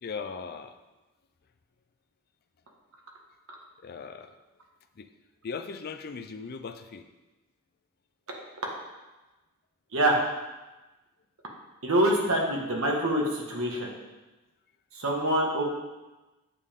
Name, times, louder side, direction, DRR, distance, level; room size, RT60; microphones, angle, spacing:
voice 1, 0.0-0.8 3.8-4.3 5.0-5.1 5.4-7.0, left 5 dB, 45° left, 8 dB, 0.5 m, -38 dB
voice 2, 11.8-13.9 14.9-15.6, right 1 dB, 65° right, -1 dB, 1.6 m, -25 dB
8.4 x 7.1 x 3.7 m, 1.1 s
head